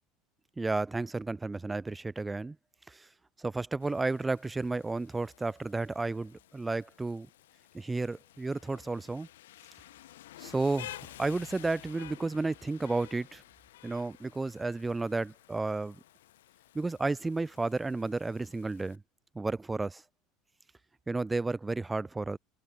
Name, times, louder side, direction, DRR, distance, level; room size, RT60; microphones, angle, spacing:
voice 1, 0.6-2.6 2.9-3.1 3.4-7.3 7.7-9.3 10.4-13.4 13.8-16.0 16.7-19.0 19.4-20.0 21.1-22.4, right 3 dB, 15° right, 0.3 m, -32 dB
Rain, 3.8-19.0, left 14 dB, 70° left, 1.0 m, -52 dB
figure-of-eight pair, 70°, 0 cm